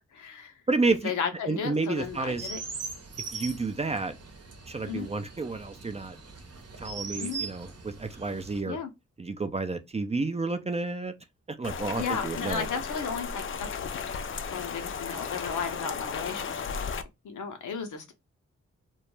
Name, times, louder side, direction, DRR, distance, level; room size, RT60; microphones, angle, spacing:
voice 1, 0.1-0.5 0.9-2.6 4.9-5.1 7.2-7.4 8.6-8.9 11.9-14.0 14.5-16.9 17.2-18.1, left 6 dB, 75° left, 0.7 m, -34 dB
voice 2, 0.7-1.1 1.5-2.5 3.3-4.1 4.7-6.2 6.8-8.8 9.2-11.1 11.5-12.7, right 3 dB, 20° right, 0.4 m, -30 dB
Chirp tweet, 2.0-8.6, right 4 dB, 55° right, 0.8 m, -41 dB
Rain, 11.6-17.0, left 6 dB, 45° left, 0.4 m, -35 dB
2.2 x 2.1 x 3.0 m
supercardioid pair, 40°, 31 cm